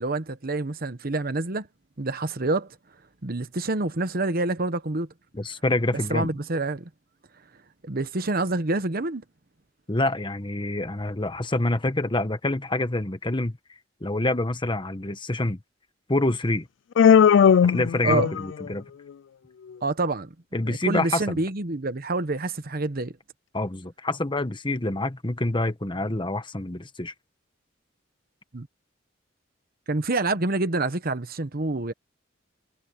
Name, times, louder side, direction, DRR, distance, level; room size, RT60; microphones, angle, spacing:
voice 1, 0.0-1.7 2.0-2.7 3.2-5.1 6.1-6.9 7.8-9.2 18.0-18.3 19.8-20.3 20.7-23.1 28.5-28.7 29.9-31.9, right 2 dB, 50° right, 1.1 m, -27 dB
voice 2, 5.3-6.3 9.9-13.6 14.0-15.6 16.1-16.7 17.6-18.8 20.5-21.4 23.5-27.1, left 2 dB, 25° left, 1.3 m, -26 dB
Human voice, 17.0-18.7, left 7 dB, 65° left, 0.3 m, -17 dB
head